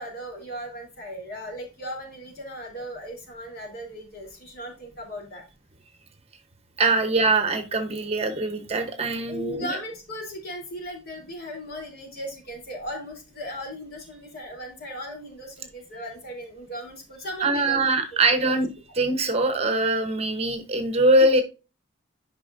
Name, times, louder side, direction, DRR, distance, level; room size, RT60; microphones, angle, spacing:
voice 1, 0.0-5.4 9.3-17.8 18.4-18.5, equal, 50° left, 1 dB, 3.3 m, -37 dB
voice 2, 6.8-9.7 17.4-21.4, right 2 dB, 30° right, 8 dB, 0.9 m, -22 dB
11.0 x 5.4 x 2.6 m, 0.30 s
head